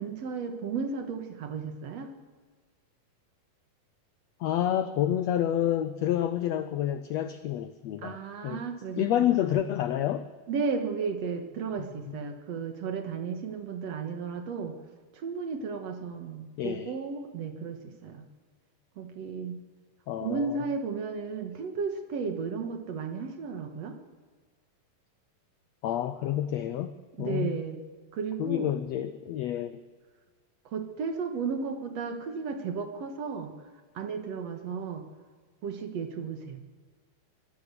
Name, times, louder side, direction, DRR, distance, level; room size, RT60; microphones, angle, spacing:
voice 1, 0.0-2.1 8.0-9.6 10.5-14.7 15.1-18.2 19.0-19.6 20.2-24.0 27.2-27.8 28.1-28.7 30.7-33.5 33.9-35.0 35.6-36.6, right 5 dB, 55° right, 6 dB, 2.3 m, -34 dB
voice 2, 4.4-8.6 9.0-10.3 11.8-12.2 16.6-16.9 20.1-20.6 25.8-27.6 28.4-29.8, left 11 dB, 85° left, 12 dB, 1.5 m, -29 dB
23.5 x 16.5 x 6.9 m, 1.5 s
omnidirectional pair, 4.0 m